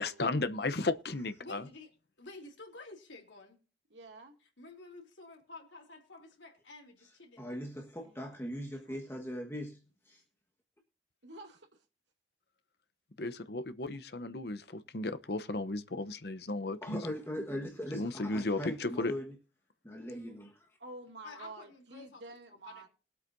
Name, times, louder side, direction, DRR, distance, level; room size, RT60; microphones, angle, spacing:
voice 1, 0.0-1.7 13.2-17.0 17.9-19.1, left 2 dB, 65° left, 0.9 m, -34 dB
voice 2, 1.4-1.9 2.2-3.6 4.6-7.6 21.2-22.2 22.5-22.9, left 3 dB, 85° left, 3.4 m, -51 dB
voice 3, 3.9-4.4 8.0-8.4 8.9-9.0 11.2-11.7 20.8-22.9, right 2 dB, 85° right, 2.4 m, -50 dB
voice 4, 7.4-9.8 10.1-10.2 16.8-19.3 19.8-20.7, equal, 15° left, 1.4 m, -40 dB
21.0 x 8.2 x 2.7 m
head